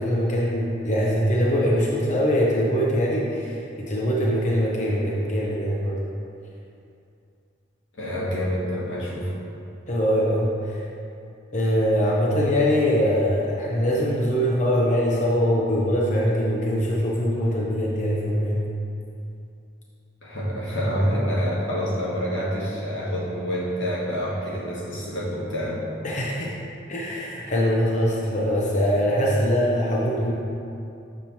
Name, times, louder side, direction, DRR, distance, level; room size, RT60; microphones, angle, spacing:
voice 1, 0.0-6.0 9.9-10.8 11.5-18.6 26.0-26.5 26.9-30.3, equal, 40° left, -4 dB, 0.6 m, -22 dB
voice 2, 7.9-9.3 20.2-25.8, equal, 90° left, -6 dB, 1.5 m, -27 dB
7.1 x 3.0 x 5.5 m, 2.6 s
head